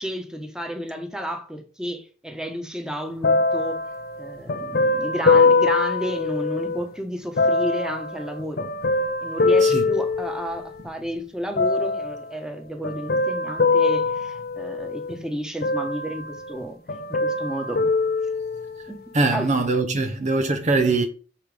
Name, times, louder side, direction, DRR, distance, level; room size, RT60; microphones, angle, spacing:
voice 1, 0.0-3.8 4.2-8.7 9.2-16.8 17.2-17.8 18.9-19.0 19.3-19.5, equal, 5° right, 1.4 m, -31 dB
sound 1, 3.2-6.8 7.4-10.9 11.6-12.2 12.8-15.2 15.6-16.6 16.9-18.9 19.6-19.7, left 3 dB, 55° left, 0.7 m, -23 dB
voice 2, 19.1-21.0, right 3 dB, 40° right, 0.9 m, -22 dB
6.6 x 5.8 x 5.1 m
head